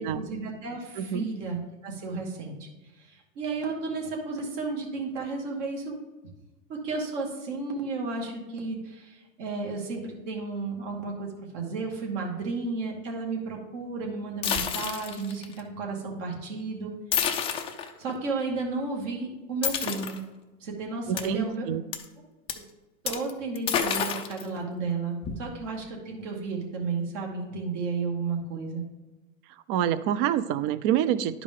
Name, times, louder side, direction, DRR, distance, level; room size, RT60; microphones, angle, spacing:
voice 1, 0.0-2.7 3.0-5.9 6.7-16.9 18.0-20.2 20.6-21.7 23.0-28.8, right 4 dB, 60° right, -1 dB, 2.3 m, -33 dB
voice 2, 1.0-1.3 21.1-21.8 29.7-31.4, right 10 dB, 40° right, 15 dB, 0.5 m, -27 dB
sound 1, 14.4-15.6 17.1-17.9 19.6-20.2 21.2-21.3 21.9-22.0 22.5-22.6 23.1-23.3 23.6-24.4 25.2-25.8, left 8 dB, 15° left, 0.3 m, -29 dB
11.0 x 4.8 x 3.7 m, 1.1 s
hypercardioid pair, 125°, 41 cm